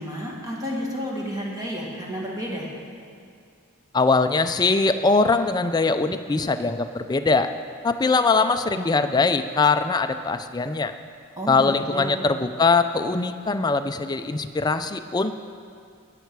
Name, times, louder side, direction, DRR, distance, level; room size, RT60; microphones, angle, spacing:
voice 1, 0.0-2.7 11.4-12.2, equal, 15° right, -3 dB, 1.8 m, -31 dB
voice 2, 3.9-7.5 7.8-10.9 11.5-15.4, left 4 dB, 20° left, 9 dB, 0.4 m, -22 dB
19.0 x 6.7 x 4.7 m, 2.3 s
head